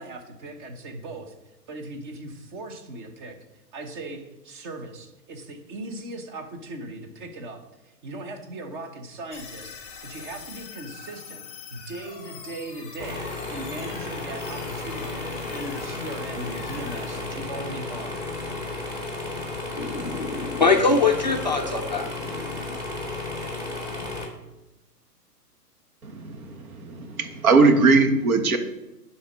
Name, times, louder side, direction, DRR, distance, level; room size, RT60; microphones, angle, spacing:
voice 1, 0.0-1.3 1.7-3.4 3.7-18.2, right 2 dB, 30° right, 5 dB, 1.2 m, -38 dB
sound 1, 9.3-18.6, left 5 dB, 10° left, 1.3 m, -43 dB
sound 2, 13.0-24.3, left 2 dB, 10° right, 1.4 m, -33 dB
voice 2, 19.8-22.8, left 4 dB, 30° left, 1 dB, 0.4 m, -24 dB
voice 3, 26.0-28.6, right 4 dB, 60° right, 6 dB, 1.6 m, -20 dB
10.5 x 4.3 x 5.3 m, 0.99 s
hypercardioid pair, 155°, 48 cm